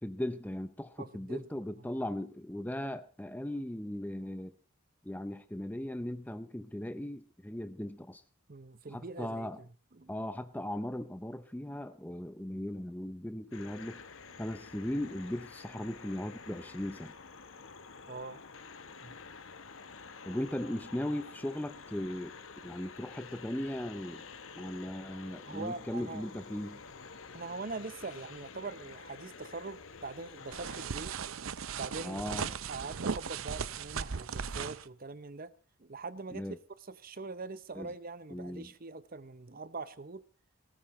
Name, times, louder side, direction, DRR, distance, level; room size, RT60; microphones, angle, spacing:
voice 1, 0.0-4.5 5.0-8.2 8.9-9.6 10.1-14.0 14.4-17.1 20.3-22.3 22.6-24.2 24.6-26.8 32.0-32.6 36.3-36.6 37.7-37.9 38.3-38.7, left 1 dB, 10° left, 0.7 m, -38 dB
voice 2, 1.0-1.5 8.5-9.7 10.0-10.1 18.1-18.4 19.0-19.2 25.5-26.2 27.3-31.2 31.8-32.2 32.7-35.5 35.8-36.5 36.9-40.2, right 3 dB, 45° right, 0.8 m, -43 dB
sound 1, 13.5-30.9, left 5 dB, 70° left, 1.1 m, -49 dB
sound 2, 30.5-34.8, right 6 dB, 70° right, 0.6 m, -37 dB
18.5 x 14.0 x 4.2 m
head